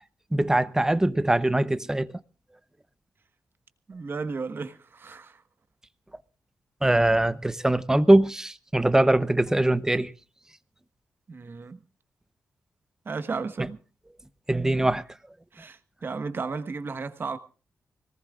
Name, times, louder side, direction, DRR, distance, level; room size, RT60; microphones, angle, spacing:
voice 1, 0.3-2.1 6.8-10.1 14.5-15.0, right 1 dB, 10° right, 0.7 m, -22 dB
voice 2, 3.9-5.4 11.3-11.8 13.0-13.8 15.5-17.4, right 4 dB, 40° right, 1.3 m, -34 dB
25.0 x 18.5 x 2.4 m
wide cardioid pair, 125°, 5 cm